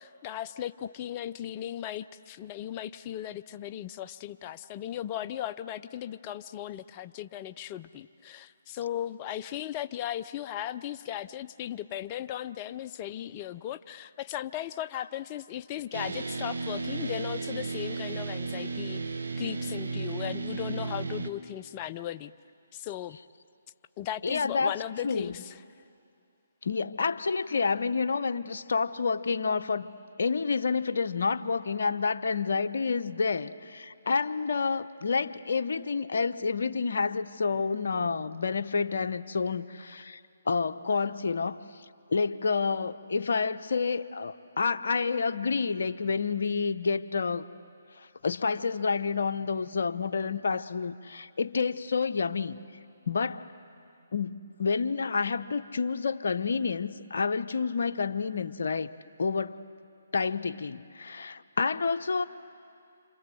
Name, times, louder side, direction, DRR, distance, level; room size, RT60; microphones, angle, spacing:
voice 1, 0.0-19.0 19.4-22.3 22.7-23.2 24.0-25.6, left 11 dB, 30° left, 11 dB, 0.6 m, -37 dB
sound 1, 15.9-21.3, right 4 dB, 75° right, 1.5 m, -34 dB
voice 2, 24.2-24.7 25.0-25.3 26.6-29.9 30.2-40.2 40.5-41.8 42.1-47.5 48.0-52.6 53.1-53.5 54.1-58.9 59.2-59.6 60.1-62.2, left 5 dB, 65° left, 9 dB, 0.9 m, -29 dB
28.0 x 27.0 x 7.8 m, 2.5 s
figure-of-eight pair, 145°, 0 cm